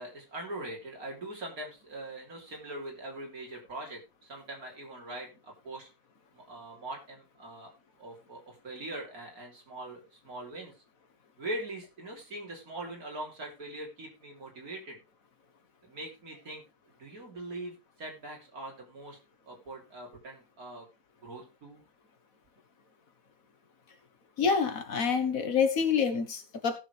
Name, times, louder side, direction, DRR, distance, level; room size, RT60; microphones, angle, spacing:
voice 1, 0.0-5.9 6.3-7.7 8.0-10.7 11.4-15.0 15.8-16.6 17.0-19.2 19.5-20.9 21.2-21.8, right 1 dB, 70° right, 0 dB, 3.8 m, -42 dB
voice 2, 24.4-26.8, left 6 dB, 65° left, 8 dB, 1.7 m, -27 dB
17.5 x 6.9 x 3.3 m, 0.28 s
omnidirectional pair, 1.6 m